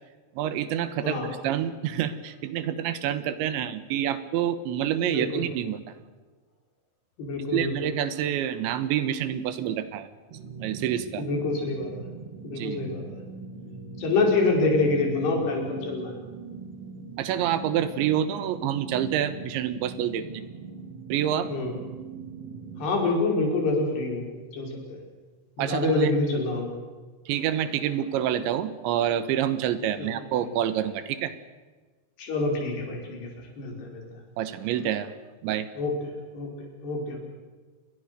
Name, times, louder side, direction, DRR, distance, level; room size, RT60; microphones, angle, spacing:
voice 1, 0.4-5.8 7.5-10.1 10.6-11.2 12.5-12.8 17.2-20.4 21.1-21.5 25.6-26.1 27.3-31.3 34.4-35.1 35.4-35.7, right 10 dB, 75° right, 12 dB, 3.6 m, -27 dB
voice 2, 7.2-7.9 11.2-11.9 12.4-13.2 14.0-16.1 21.5-21.7 22.8-24.2 24.5-25.0 25.6-26.7 30.0-30.2 32.2-33.3 33.6-34.0 35.8-36.0 36.3-37.2, left 3 dB, 60° left, 1 dB, 6.9 m, -26 dB
sound 1, 10.3-22.9, right 4 dB, 40° right, 2.8 m, -41 dB
28.5 x 21.5 x 6.8 m, 1.3 s
omnidirectional pair, 5.4 m